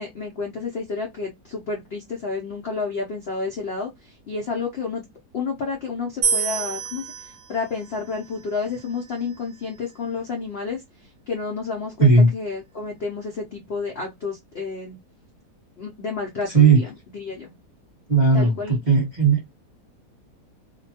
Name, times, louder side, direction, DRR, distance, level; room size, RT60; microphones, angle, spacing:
voice 1, 0.0-5.0 5.3-10.8 11.3-15.0 15.8-16.9 17.1-17.5 18.3-18.8, left 4 dB, 65° left, 0.6 m, -30 dB
sound 1, 6.2-9.5, right 6 dB, 55° right, 1.0 m, -29 dB
voice 2, 16.5-16.8 18.1-19.4, right 4 dB, 35° right, 0.9 m, -16 dB
2.7 x 2.2 x 2.7 m
omnidirectional pair, 1.8 m